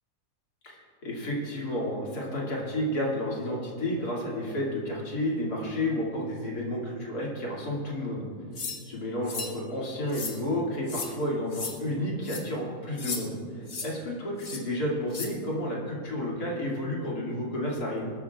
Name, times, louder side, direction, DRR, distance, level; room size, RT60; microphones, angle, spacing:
voice 1, 0.6-8.3 8.9-18.0, left 1 dB, 75° left, -4 dB, 3.1 m, -31 dB
sound 1, 8.6-8.8 9.3-9.5 10.1-10.4 10.9-11.1 11.5-11.7 12.2-12.4 13.0-13.2 13.7-13.9 14.4-14.6 15.1-15.3, left 4 dB, 45° left, 1.6 m, -35 dB
21.0 x 12.5 x 2.4 m, 2.3 s
omnidirectional pair, 1.7 m